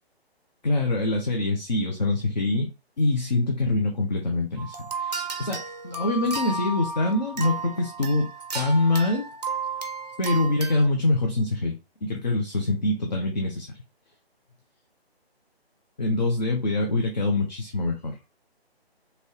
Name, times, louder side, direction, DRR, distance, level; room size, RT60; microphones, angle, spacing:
voice 1, 0.6-2.7 3.0-9.3 10.2-13.8 16.0-18.2, left 2 dB, 45° left, 2 dB, 0.5 m, -25 dB
sound 1, 4.6-10.9, right 3 dB, 40° right, 0.5 m, -33 dB
2.8 x 2.6 x 3.0 m, 0.30 s
figure-of-eight pair, 145°, 32 cm